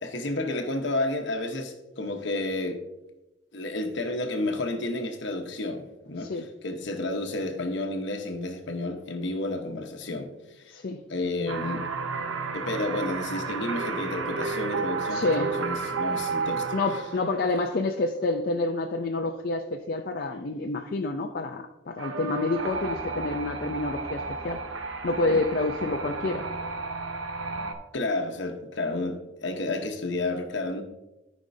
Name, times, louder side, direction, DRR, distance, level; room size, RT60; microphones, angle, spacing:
voice 1, 0.0-2.8 3.5-6.3 6.6-10.3 10.6-10.8 11.1-11.9 12.5-16.7 17.5-17.6 27.9-30.8, left 2 dB, 65° left, 1.0 m, -31 dB
voice 2, 10.7-11.0 15.1-15.5 16.7-24.6 25.0-26.5, left 2 dB, 50° left, 0.5 m, -28 dB
sound 1, 11.5-17.7 22.0-27.7, right 4 dB, 85° right, 0.8 m, -32 dB
13.5 x 5.2 x 2.7 m
head